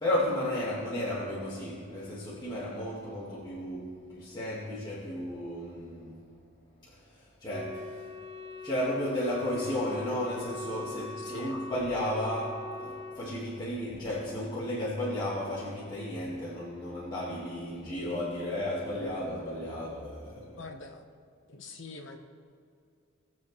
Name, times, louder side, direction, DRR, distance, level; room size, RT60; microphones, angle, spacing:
voice 1, 0.0-6.2 6.8-8.1 8.6-20.6, left 1 dB, 20° left, -9 dB, 1.8 m, -34 dB
Wind instrument woodwind instrument, 7.5-13.3, left 2 dB, 35° right, 1.0 m, -41 dB
voice 2, 11.2-11.6 20.6-21.0 21.5-22.2, left 3 dB, 65° left, 4 dB, 1.1 m, -44 dB
19.5 x 7.2 x 3.2 m, 2.3 s
head